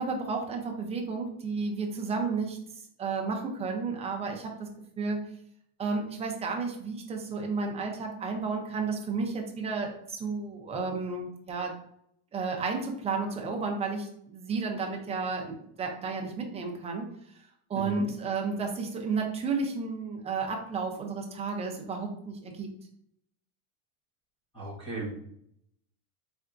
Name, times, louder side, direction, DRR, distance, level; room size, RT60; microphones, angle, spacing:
voice 1, 0.0-2.6 3.0-4.7 5.0-5.2 5.8-11.7 12.3-17.0 17.7-22.7, right 4 dB, 15° right, 2 dB, 0.5 m, -32 dB
voice 2, 17.7-18.1 24.5-25.2, right 3 dB, 10° left, -5 dB, 1.2 m, -36 dB
4.4 x 3.4 x 2.5 m, 0.72 s
supercardioid pair, 145°, 45 cm